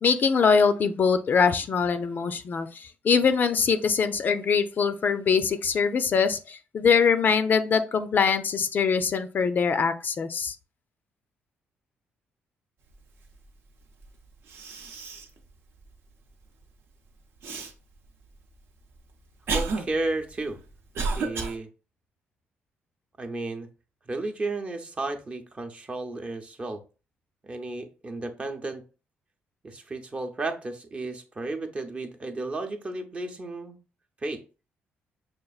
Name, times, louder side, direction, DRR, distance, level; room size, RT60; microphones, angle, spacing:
voice 1, 0.0-2.7 3.0-10.5, left 6 dB, 50° left, 10 dB, 0.4 m, -23 dB
Cough, 14.0-14.1 14.5-15.4 15.8-15.9 17.4-17.7 18.5-21.6, right 4 dB, 65° right, 0.7 m, -31 dB
voice 2, 19.5-20.6 21.1-21.7 23.2-23.7 24.1-26.8 27.4-28.8 29.6-33.8 34.2-34.4, right 2 dB, 30° right, 5 dB, 0.7 m, -33 dB
5.8 x 2.4 x 2.4 m, 0.34 s
cardioid pair, 85°, 4 cm